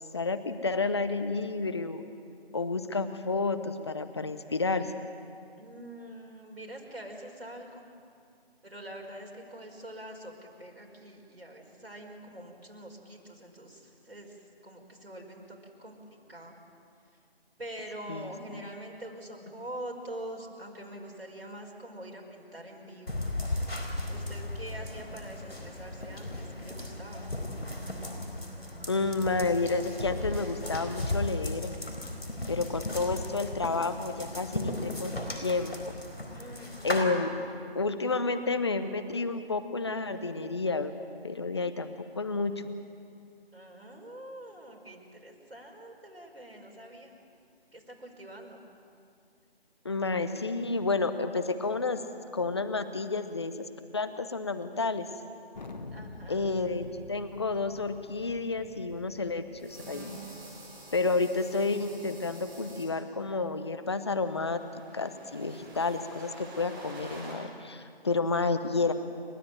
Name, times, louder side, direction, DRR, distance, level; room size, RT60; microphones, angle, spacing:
voice 1, 0.1-2.0 2.5-4.9 18.1-18.3 28.9-31.7 32.5-35.9 36.8-37.3 37.7-40.9 41.2-42.5 49.8-52.0 52.3-53.5 53.9-55.1 56.3-60.2 60.9-64.6 64.9-68.9, left 3 dB, 25° left, 10 dB, 0.8 m, -30 dB
voice 2, 5.6-7.8 8.6-10.3 10.6-14.4 14.6-16.6 17.6-23.2 24.1-27.3 36.3-37.1 43.5-47.1 47.7-48.6 55.9-56.5, right 1 dB, 75° right, 0 dB, 5.1 m, -45 dB
sound 1, 23.1-37.0, left 1 dB, 80° left, 4.3 m, -36 dB
Thunder, 55.5-60.7, left 3 dB, 45° left, 1.4 m, -47 dB
sound 2, 59.6-62.9 64.0-67.3, right 2 dB, 10° right, 1.8 m, -48 dB
30.0 x 12.0 x 9.2 m, 2.4 s
figure-of-eight pair, 160°, 31 cm